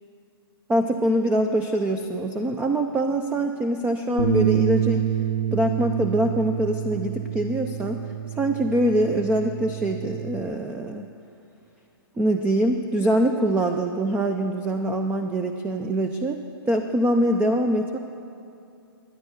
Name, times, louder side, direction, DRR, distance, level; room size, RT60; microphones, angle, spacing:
voice 1, 0.7-5.1 5.5-8.0 8.4-11.1 12.2-16.4 16.7-18.0, right 1 dB, 10° right, 6 dB, 0.5 m, -24 dB
Bass guitar, 4.2-10.4, right 9 dB, 75° right, 1.8 m, -27 dB
12.5 x 9.8 x 8.1 m, 2.6 s
hypercardioid pair, 135°, 13 cm